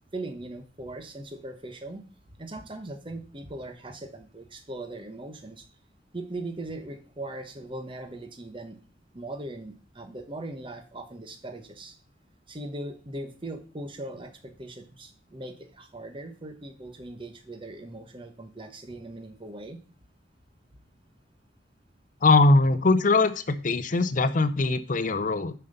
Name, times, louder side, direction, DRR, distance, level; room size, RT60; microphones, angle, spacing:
voice 1, 0.1-2.0 2.4-5.6 6.1-8.8 9.1-11.9 12.5-19.8, right 2 dB, 25° right, 7 dB, 1.1 m, -39 dB
voice 2, 22.2-25.5, left 3 dB, 45° left, 12 dB, 0.6 m, -21 dB
7.5 x 5.7 x 6.6 m, 0.39 s
head